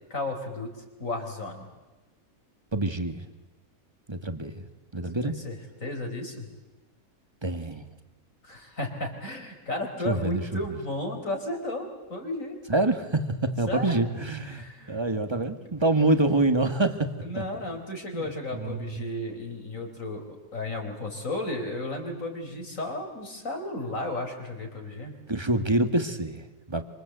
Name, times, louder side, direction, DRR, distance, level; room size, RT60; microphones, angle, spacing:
voice 1, 0.1-0.7 1.0-1.7 5.2-6.5 8.4-12.6 13.7-14.0 14.4-15.0 17.2-20.2 20.5-25.2, left 2 dB, 55° left, 3 dB, 5.0 m, -34 dB
voice 2, 2.7-3.2 4.1-4.6 4.9-5.4 7.4-7.9 10.0-10.6 12.7-17.1 17.4-17.5 18.1-18.3 18.6-19.1 25.3-26.8, right 2 dB, 15° right, 8 dB, 1.8 m, -26 dB
27.5 x 26.5 x 8.1 m, 1.2 s
omnidirectional pair, 1.7 m